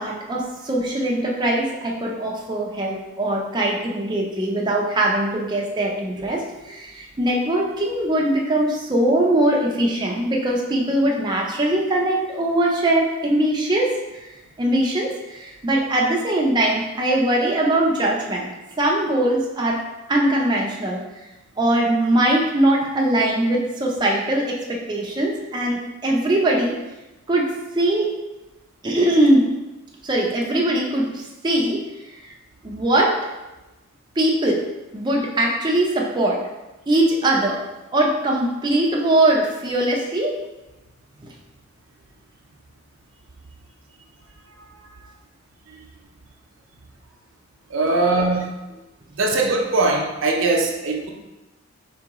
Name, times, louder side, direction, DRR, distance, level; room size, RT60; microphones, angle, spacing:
voice 1, 0.0-14.0 14.6-18.5 18.8-19.8 20.1-21.0 21.6-26.8 27.3-28.1 28.8-29.6 30.0-31.8 32.2-32.3 32.6-33.2 34.2-34.7 34.9-36.4 36.9-37.7 37.9-40.4 41.2-41.3 47.9-48.1, right 1 dB, 20° right, -2 dB, 0.5 m, -21 dB
voice 2, 47.7-48.5 49.1-51.1, right 3 dB, 70° right, 1 dB, 0.7 m, -21 dB
4.6 x 2.9 x 3.5 m, 1.0 s
head